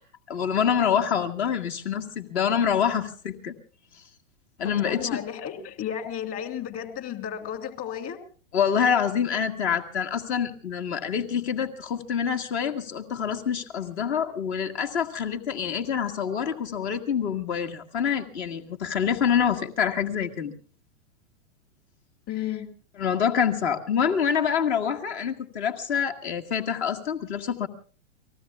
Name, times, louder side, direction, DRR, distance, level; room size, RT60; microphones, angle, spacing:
voice 1, 0.3-3.5 4.6-5.2 8.5-20.5 23.0-27.7, left 7 dB, 55° left, 4 dB, 2.0 m, -26 dB
voice 2, 4.6-8.2 22.3-22.7, left 9 dB, 35° left, 8 dB, 2.9 m, -33 dB
30.0 x 19.5 x 2.4 m, 0.39 s
figure-of-eight pair, 105°, 39 cm